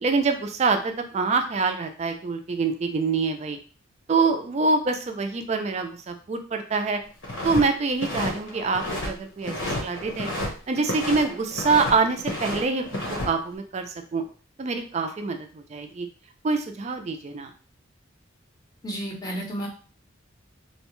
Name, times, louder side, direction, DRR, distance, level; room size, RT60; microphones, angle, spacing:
voice 1, 0.0-3.6 4.1-7.0 7.4-10.3 10.7-12.9 13.2-14.2 14.6-16.1 16.4-17.5, right 4 dB, 35° right, 6 dB, 0.3 m, -25 dB
sound 1, 7.2-7.6 7.9-9.1 9.4-10.5 10.8-11.9 12.2-13.3, left 1 dB, 75° left, 0.9 m, -30 dB
voice 2, 18.8-19.7, right 1 dB, 20° left, -1 dB, 0.6 m, -31 dB
2.6 x 2.1 x 3.0 m, 0.38 s
head